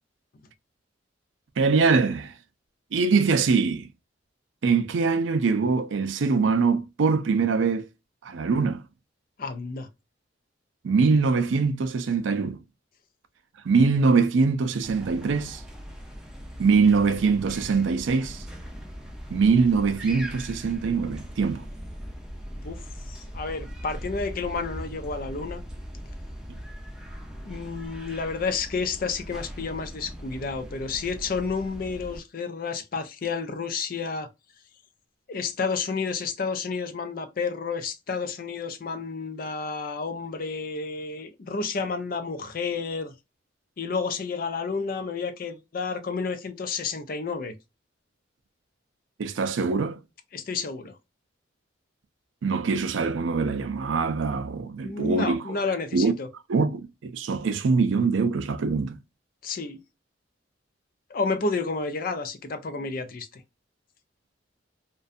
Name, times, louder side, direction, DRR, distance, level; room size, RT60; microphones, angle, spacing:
voice 1, 1.6-2.3 2.9-3.9 4.6-7.9 8.2-8.8 10.8-12.6 13.6-15.6 16.6-18.4 19.3-21.7 26.5-26.6 49.2-50.0 52.4-55.6 55.9-56.1 56.5-59.0, right 4 dB, 80° right, 0.4 m, -23 dB
voice 2, 9.4-9.9 22.5-22.8 23.1-25.6 27.5-34.3 35.3-43.1 43.8-47.5 50.3-50.9 54.8-56.3 59.4-59.8 61.1-63.4, left 4 dB, 50° left, 0.4 m, -30 dB
sound 1, 14.8-32.2, equal, 5° right, 0.5 m, -40 dB
2.5 x 2.2 x 2.4 m
head